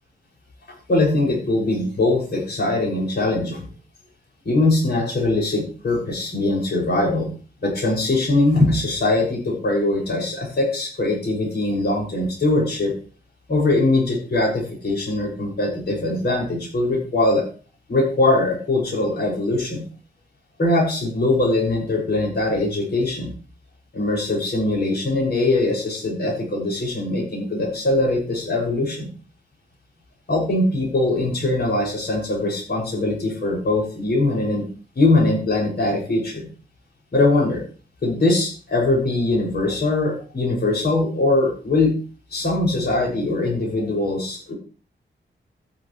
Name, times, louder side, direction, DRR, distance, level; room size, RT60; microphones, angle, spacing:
voice 1, 0.9-3.7 4.5-7.3 7.6-12.9 13.5-17.5 17.9-19.8 20.6-23.3 23.9-29.1 30.3-34.7 35.0-36.5 37.1-37.6 38.0-41.9 42.3-44.5, left 2 dB, 60° left, -2 dB, 7.0 m, -21 dB
13.0 x 11.0 x 3.4 m, 0.39 s
wide cardioid pair, 105°, 19 cm